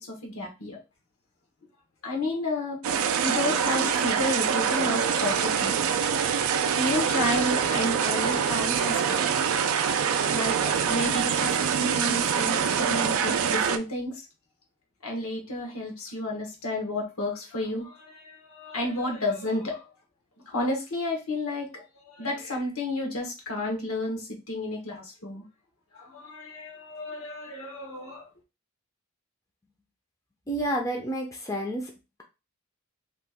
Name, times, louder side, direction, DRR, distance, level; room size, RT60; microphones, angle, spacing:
voice 1, 0.1-0.8 2.0-2.8 3.2-5.8 6.8-9.3 10.3-14.3 15.0-19.9 20.5-25.4 25.9-28.3, left 1 dB, 70° left, 0 dB, 1.1 m, -31 dB
sound 1, 2.8-13.8, right 7 dB, 70° right, 0.4 m, -25 dB
voice 2, 30.5-31.9, right 1 dB, 15° left, 0 dB, 0.5 m, -29 dB
2.9 x 2.3 x 3.4 m, 0.28 s
head